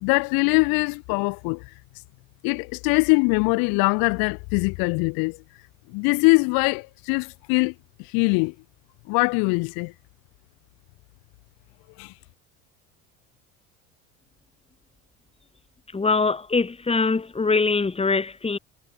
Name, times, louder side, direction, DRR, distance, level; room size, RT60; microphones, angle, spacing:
voice 1, 0.0-1.7 2.4-5.4 5.9-7.7 8.0-8.5 9.1-9.9 12.0-12.1, left 31 dB, 60° left, 0.8 m, -22 dB
voice 2, 15.9-18.6, left 4 dB, 15° left, 1.6 m, -23 dB
hypercardioid pair, 75°, 41 cm